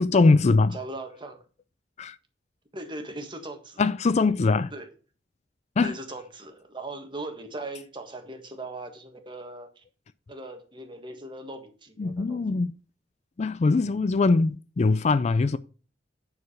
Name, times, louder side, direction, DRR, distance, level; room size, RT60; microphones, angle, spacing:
voice 1, 0.0-0.8 2.0-2.2 3.8-4.7 5.8-6.0 12.0-12.7 13.4-15.6, left 3 dB, 40° left, 0.4 m, -22 dB
voice 2, 0.7-1.4 2.7-3.8 4.7-4.9 5.8-9.8 10.3-12.6, right 2 dB, 25° right, 1.5 m, -39 dB
9.5 x 4.8 x 5.6 m
head